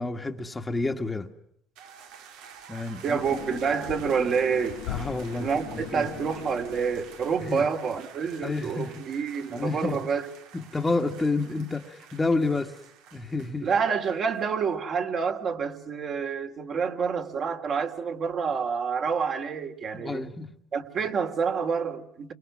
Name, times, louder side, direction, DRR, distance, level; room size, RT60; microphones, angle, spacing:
voice 1, 0.0-1.3 2.7-3.4 4.9-6.1 7.4-7.6 8.4-9.0 9.5-10.1 10.6-12.7 13.1-13.7 19.9-20.5, left 3 dB, 20° left, 1.6 m, -29 dB
sound 1, 1.8-14.4, right 8 dB, 80° right, 2.0 m, -49 dB
voice 2, 3.0-4.8 5.4-10.3 13.6-20.2 20.7-22.3, right 6 dB, 50° right, 2.8 m, -28 dB
sound 2, 3.1-7.8, left 13 dB, 80° left, 0.9 m, -40 dB
28.5 x 24.5 x 6.2 m
supercardioid pair, 85°, 0 cm